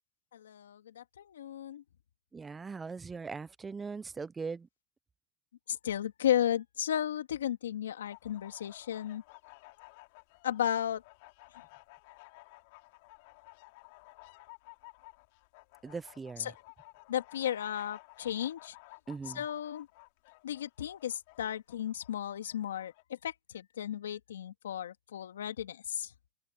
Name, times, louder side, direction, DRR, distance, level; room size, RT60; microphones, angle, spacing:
voice 1, 0.3-1.8 5.7-9.2 10.4-11.0 16.4-16.6 17.1-18.7 19.3-19.9 20.4-26.1, left 10 dB, 90° left, 2.2 m, -34 dB
voice 2, 2.3-4.7 15.8-16.5 19.1-19.4, right 4 dB, 20° right, 0.6 m, -40 dB
sound 1, 8.0-23.0, left 25 dB, 65° left, 4.2 m, -55 dB
open air
hypercardioid pair, 100°, 0 cm